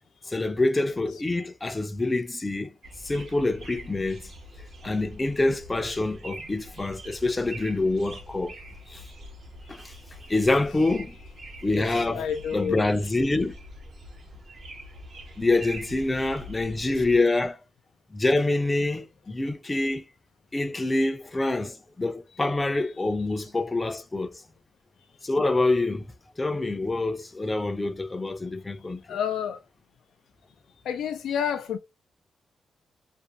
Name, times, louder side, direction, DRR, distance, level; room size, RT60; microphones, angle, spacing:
voice 1, 0.3-2.7 3.0-4.2 4.8-8.6 8.9-9.1 9.7-9.9 10.3-11.1 11.6-12.2 12.5-13.6 15.4-17.6 18.1-20.0 20.5-24.4 25.2-26.1 26.4-29.2, left 2 dB, 25° left, 0.5 m, -26 dB
sound 1, 2.8-17.2, right 1 dB, 60° right, 0.8 m, -44 dB
voice 2, 11.7-12.8 16.8-16.9 29.1-29.6 30.8-31.8, left 8 dB, 90° left, 0.3 m, -29 dB
2.5 x 2.1 x 2.7 m
cardioid pair, 80°, 0 cm